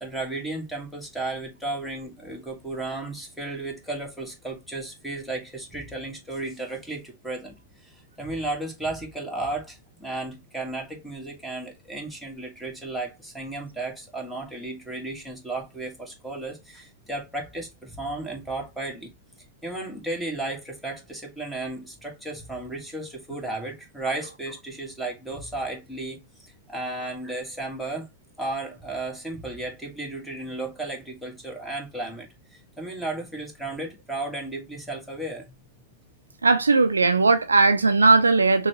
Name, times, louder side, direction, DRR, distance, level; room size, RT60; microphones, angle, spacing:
voice 1, 0.0-7.5 7.8-19.1 19.6-28.1 28.4-35.5, right 2 dB, ahead, 1.6 m, -34 dB
voice 2, 36.4-38.7, right 3 dB, 80° right, 0.4 m, -18 dB
5.9 x 2.3 x 2.9 m
figure-of-eight pair, 90°, 0 cm